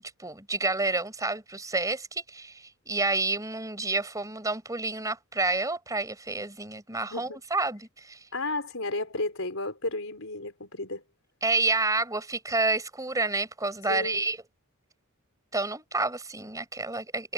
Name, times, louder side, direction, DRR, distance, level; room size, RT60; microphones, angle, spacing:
voice 1, 0.2-8.2 11.4-14.4 15.5-17.3, right 3 dB, 15° right, 5.4 m, -29 dB
voice 2, 8.3-11.0 13.9-14.2, left 2 dB, 65° left, 5.4 m, -32 dB
head